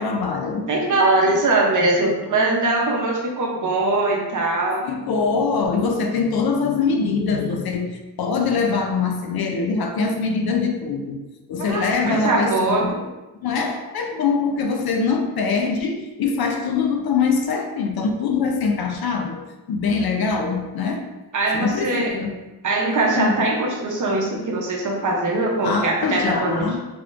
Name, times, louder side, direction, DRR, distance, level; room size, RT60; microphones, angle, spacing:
voice 1, 0.0-0.7 1.3-1.4 4.8-11.2 11.5-13.1 13.4-21.1 21.5-22.4 23.2-23.5 25.6-26.8, left 5 dB, 60° left, 3 dB, 0.5 m, -23 dB
voice 2, 0.7-4.9 11.6-12.9 21.3-22.1 22.6-26.7, right 2 dB, 45° right, -1 dB, 0.8 m, -21 dB
3.8 x 3.0 x 2.5 m, 1.1 s
wide cardioid pair, 130°, 42 cm